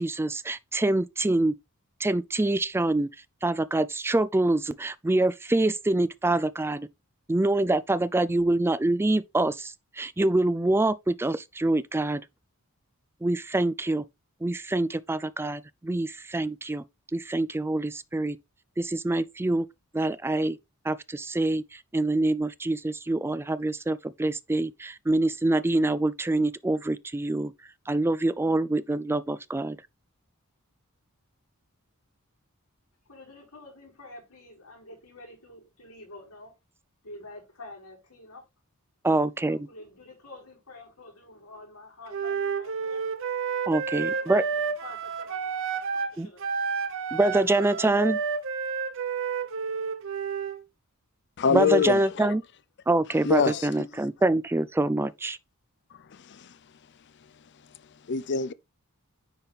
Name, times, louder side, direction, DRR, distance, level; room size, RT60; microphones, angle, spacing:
voice 1, 0.0-1.5 2.0-3.1 3.4-6.9 7.3-12.2 13.2-14.0 14.4-16.8 17.1-18.4 18.8-19.7 19.9-20.6 20.9-21.6 21.9-27.5 27.9-29.8 39.0-39.7 43.7-44.4 46.2-46.3 47.1-48.2 51.5-52.4 52.9-55.4, right 2 dB, 10° right, 0.3 m, -25 dB
voice 2, 33.0-36.6 37.0-38.4 39.5-43.1 43.9-46.6, left 2 dB, 80° left, 5.1 m, -48 dB
Wind instrument woodwind instrument, 42.1-46.1 46.4-50.6, right 6 dB, 60° right, 0.9 m, -30 dB
voice 3, 51.4-52.4 53.2-54.1 56.1-56.6 58.1-58.5, left 6 dB, 50° left, 0.5 m, -26 dB
9.8 x 4.1 x 3.4 m
head